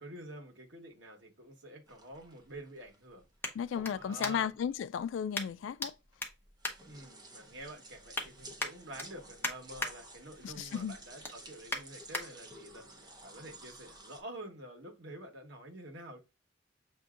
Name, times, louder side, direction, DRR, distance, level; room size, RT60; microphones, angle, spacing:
voice 1, 0.0-3.3 3.9-4.5 6.9-16.2, right 1 dB, 75° right, 1.3 m, -48 dB
sound 1, 0.8-4.7 5.3-5.9 6.2-7.5 7.9-8.3 8.6-9.9 10.3-10.6 10.9-12.2 12.8-12.9, left 2 dB, 10° left, 0.9 m, -40 dB
sound 2, 1.9-14.2, right 1 dB, 20° right, 0.8 m, -54 dB
voice 2, 3.5-5.9 10.4-11.0, left 8 dB, 85° left, 0.3 m, -35 dB
6.8 x 2.7 x 2.4 m
head